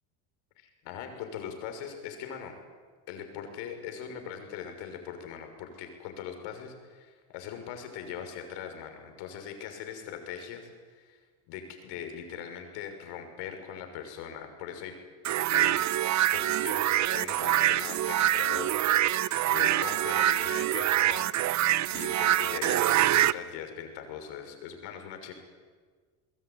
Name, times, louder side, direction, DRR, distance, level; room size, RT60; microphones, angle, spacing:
voice 1, 0.6-2.5 3.1-11.2 11.5-14.9 15.5-15.8 16.3-18.8 19.0-19.2 19.5-25.3, left 8 dB, 70° left, 6 dB, 6.4 m, -41 dB
sound 1, 15.2-23.3, right 13 dB, 40° right, 0.8 m, -25 dB
24.5 x 21.5 x 9.7 m, 1.5 s
supercardioid pair, 105°, 45 cm